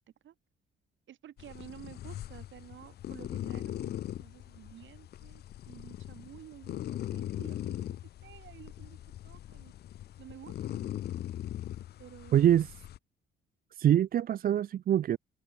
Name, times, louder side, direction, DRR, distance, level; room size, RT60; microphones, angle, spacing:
voice 1, 1.1-3.9 4.2-9.0 9.2-9.7 10.2-10.9 12.0-12.6, right 11 dB, 70° right, 6.0 m, -52 dB
sound 1, 1.4-13.0, left 12 dB, 55° left, 0.4 m, -40 dB
voice 2, 12.3-12.7 13.7-15.2, right 11 dB, 45° right, 0.4 m, -24 dB
cardioid pair, 90°, 20 cm